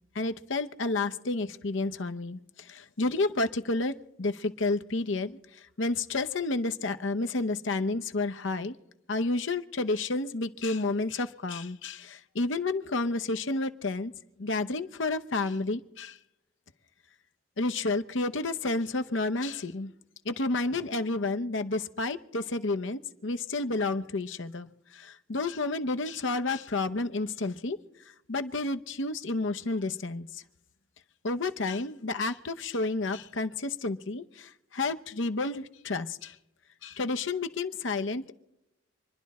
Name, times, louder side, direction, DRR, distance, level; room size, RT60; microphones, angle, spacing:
voice 1, 0.1-8.7 9.1-14.1 14.4-16.2 17.6-19.9 20.2-27.8 28.3-30.4 31.2-36.4 36.8-38.3, left 3 dB, 65° left, 9 dB, 0.9 m, -30 dB
27.0 x 10.5 x 4.2 m, 0.89 s
head